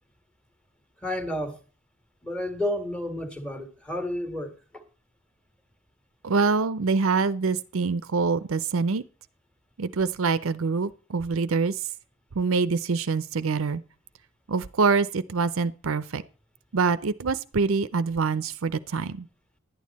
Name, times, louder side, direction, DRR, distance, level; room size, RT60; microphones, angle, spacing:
voice 1, 1.0-1.6 2.2-4.8, left 1 dB, 5° left, 1.6 m, -31 dB
voice 2, 6.2-9.0 9.8-11.7 12.4-13.8 14.5-16.2 16.7-19.3, right 4 dB, 65° right, 0.6 m, -25 dB
11.5 x 9.4 x 4.1 m
head